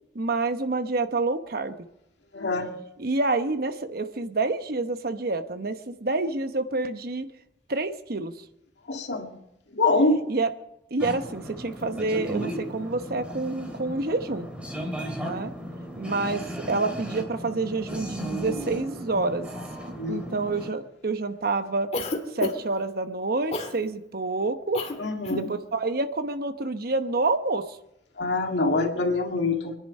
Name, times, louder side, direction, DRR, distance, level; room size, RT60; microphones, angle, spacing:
voice 1, 0.1-1.7 3.0-7.3 7.7-8.3 10.3-10.5 10.9-14.5 15.1-15.5 16.0-19.5 20.1-21.9 22.3-24.8 25.2-27.7, right 3 dB, 55° right, 9 dB, 1.0 m, -28 dB
voice 2, 2.3-2.8 8.9-9.3 9.7-10.3 19.9-20.3 25.0-25.5 28.2-29.8, left 2 dB, 75° left, 2 dB, 2.1 m, -25 dB
sound 1, 11.0-20.7, right 1 dB, 5° right, 2.7 m, -35 dB
Cough, 21.9-22.8 23.5-23.8 24.7-25.0 25.2-25.5, left 2 dB, 40° left, 1.8 m, -30 dB
25.0 x 10.0 x 5.4 m, 0.85 s
head